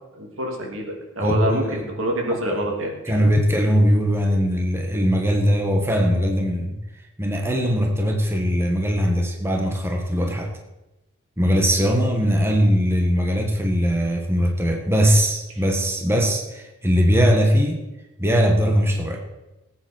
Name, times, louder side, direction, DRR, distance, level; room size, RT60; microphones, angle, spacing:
voice 1, 0.1-3.2, right 1 dB, 80° right, 1 dB, 2.8 m, -27 dB
voice 2, 1.2-1.9 2.3-2.7 3.1-6.8 7.2-10.5 11.4-17.8 18.2-19.2, equal, 10° right, 1 dB, 1.5 m, -20 dB
19.0 x 8.8 x 4.6 m, 1.0 s
head